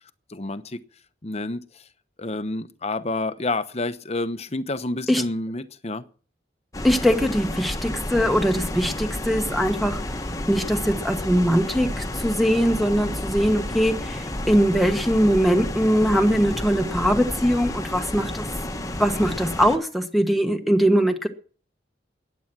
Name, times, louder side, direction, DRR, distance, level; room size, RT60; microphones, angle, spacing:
voice 1, 0.3-0.8 1.2-1.9 2.2-6.1 13.1-13.2, left 2 dB, 35° left, 0.9 m, -29 dB
sound 1, 6.7-19.8, left 1 dB, 20° left, 1.2 m, -31 dB
voice 2, 6.8-10.0 10.5-18.5 19.0-21.3, equal, ahead, 1.2 m, -21 dB
15.5 x 10.0 x 6.1 m
head